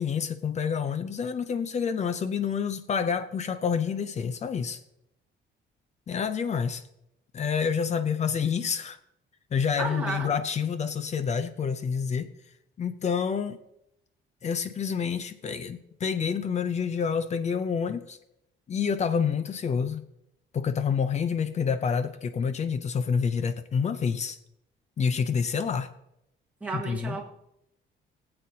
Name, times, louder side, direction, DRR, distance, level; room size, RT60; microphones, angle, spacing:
voice 1, 0.0-4.8 6.1-6.8 7.3-9.0 9.5-12.3 12.8-13.6 14.4-18.2 18.7-20.0 20.5-24.4 25.0-25.9 26.7-27.2, left 6 dB, 35° left, 0.6 m, -28 dB
voice 2, 9.8-10.3 26.6-27.3, right 4 dB, 5° right, 1.6 m, -32 dB
22.0 x 7.9 x 2.8 m
cardioid pair, 170°, 20 cm